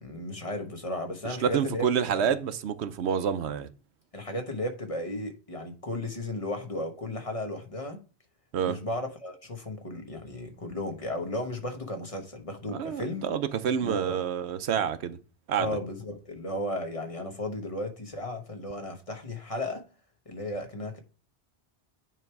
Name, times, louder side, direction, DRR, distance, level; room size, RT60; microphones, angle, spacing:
voice 1, 0.0-1.9 2.1-2.3 4.1-8.0 8.6-13.3 13.8-14.2 15.6-19.8 20.3-21.0, left 1 dB, 35° left, 1.1 m, -34 dB
voice 2, 1.2-3.7 8.5-8.8 12.7-15.2 15.5-15.7, right 8 dB, 90° right, 1.0 m, -28 dB
9.2 x 3.3 x 4.5 m
omnidirectional pair, 1.1 m